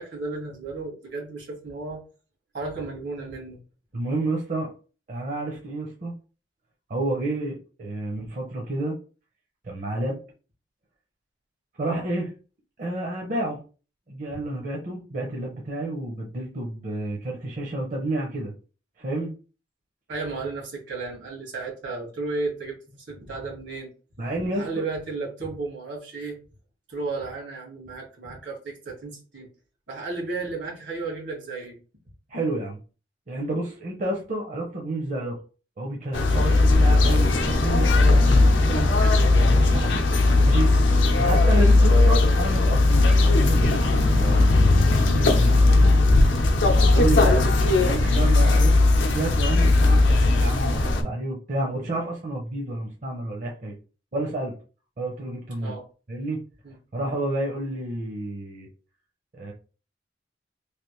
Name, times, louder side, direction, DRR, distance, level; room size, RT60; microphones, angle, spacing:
voice 1, 0.0-2.0 2.5-3.6 11.8-12.0 14.3-14.4 20.1-23.9 24.5-26.4 26.9-29.5 29.9-31.8 41.8-41.9 47.1-47.2 55.6-55.8 56.6-56.8, right 3 dB, 75° right, -1 dB, 1.6 m, -34 dB
voice 2, 3.9-4.7 5.1-6.1 6.9-9.0 9.6-10.2 11.8-12.3 12.8-13.6 14.1-18.5 19.0-19.3 24.2-24.7 32.3-32.8 33.3-35.3 35.8-38.2 38.4-39.9 40.4-40.8 41.1-44.5 44.8-45.9 46.9-53.7 54.1-54.5 55.0-55.7 56.1-56.4 56.9-58.7 59.3-59.5, right 1 dB, 45° right, -1 dB, 0.6 m, -30 dB
sound 1, 36.1-51.0, left 2 dB, 90° left, 0.6 m, -18 dB
3.3 x 2.5 x 3.0 m, 0.36 s
head